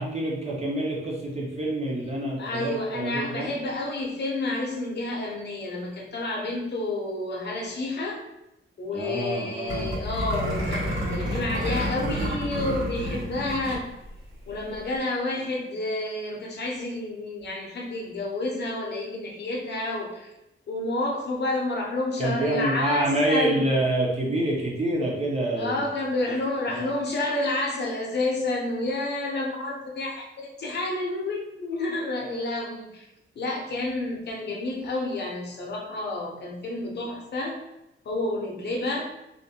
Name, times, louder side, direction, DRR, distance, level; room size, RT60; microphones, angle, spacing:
voice 1, 0.0-3.5 8.9-9.9 22.2-25.9 26.7-26.9, right 1 dB, 30° right, -2 dB, 0.6 m, -27 dB
voice 2, 2.4-8.2 8.8-13.9 14.5-20.3 20.7-23.7 25.6-33.1 33.4-37.6 38.0-39.0, left 2 dB, 55° left, -1 dB, 0.6 m, -29 dB
sound 1, 9.7-13.8 14.1-14.2 14.5-14.8, equal, 75° right, 1.1 m, -29 dB
2.4 x 2.1 x 2.7 m, 0.89 s
wide cardioid pair, 140°, 21 cm